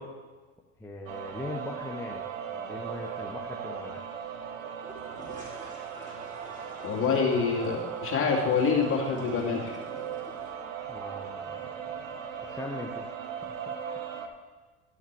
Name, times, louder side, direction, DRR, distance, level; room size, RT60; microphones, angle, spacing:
voice 1, 0.8-4.1 10.9-11.7 12.4-13.1 13.5-13.7, left 2 dB, 5° left, -1 dB, 0.9 m, -40 dB
sound 1, 1.1-14.3, right 7 dB, 85° right, 0.9 m, -38 dB
sound 2, 4.8-10.5, right 1 dB, 20° right, 3.2 m, -48 dB
voice 2, 6.8-9.8, left 5 dB, 35° left, -2 dB, 2.4 m, -26 dB
11.5 x 5.7 x 4.7 m, 1.3 s
hypercardioid pair, 75°, 38 cm